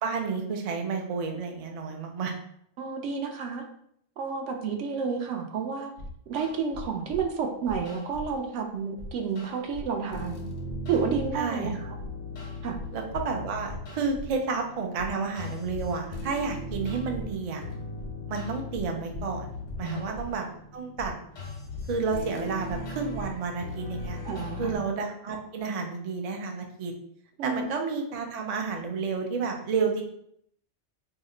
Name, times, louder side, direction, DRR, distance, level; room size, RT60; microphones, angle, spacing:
voice 1, 0.0-2.4 11.3-11.8 12.9-17.6 18.3-19.5 19.8-20.5 20.7-21.1 21.9-24.2 24.6-26.9 27.4-30.0, right 5 dB, 60° right, 3 dB, 0.3 m, -31 dB
voice 2, 2.8-3.6 4.2-5.9 6.3-10.5 10.9-11.9 12.6-12.8 19.8-20.1 24.2-24.8 27.4-27.7, right 5 dB, 80° right, 4 dB, 0.9 m, -30 dB
sound 1, 6.0-7.3 7.7-8.4 9.0-24.8, left 2 dB, 90° left, 1.1 m, -38 dB
2.7 x 2.1 x 3.6 m, 0.70 s
omnidirectional pair, 1.2 m